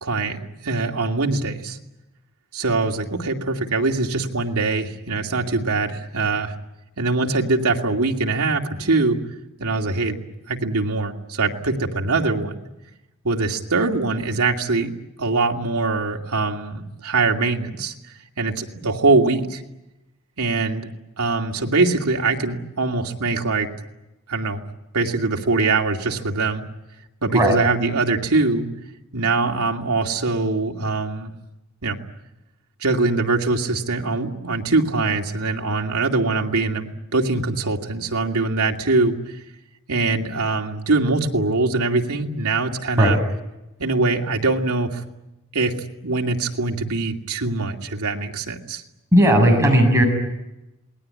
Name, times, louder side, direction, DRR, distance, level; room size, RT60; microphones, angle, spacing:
voice 1, 0.0-1.8 2.5-6.5 7.0-9.2 9.6-10.2 10.5-12.5 13.2-14.9 15.2-17.9 18.4-19.6 20.4-20.9 21.2-23.7 24.3-24.6 24.9-26.6 27.2-28.7 29.1-31.3 31.8-32.0 32.8-39.4 39.9-43.2 43.8-45.0 45.5-45.8 46.0-48.8, right 3 dB, 90° right, 1 dB, 2.5 m, -22 dB
voice 2, 49.1-50.0, equal, 15° right, 0 dB, 6.9 m, -15 dB
28.0 x 20.0 x 9.8 m, 0.96 s
head